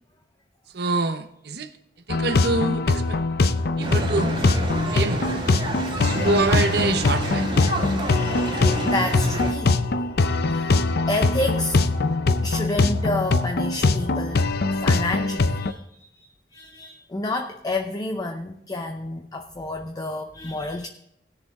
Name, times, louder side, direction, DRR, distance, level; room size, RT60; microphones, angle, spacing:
voice 1, 0.7-1.7 2.1-3.2 3.8-4.3 4.9-5.4 5.9-7.5, right 3 dB, 65° right, 7 dB, 0.8 m, -26 dB
sound 1, 2.1-15.7, left 3 dB, 60° left, 0.6 m, -22 dB
sound 2, 3.8-9.5, right 1 dB, 30° right, 2.0 m, -29 dB
voice 2, 8.5-9.8 10.4-10.8 11.0-16.3 16.5-20.9, left 2 dB, 20° left, 4 dB, 0.6 m, -30 dB
19.0 x 6.7 x 3.6 m, 0.78 s
head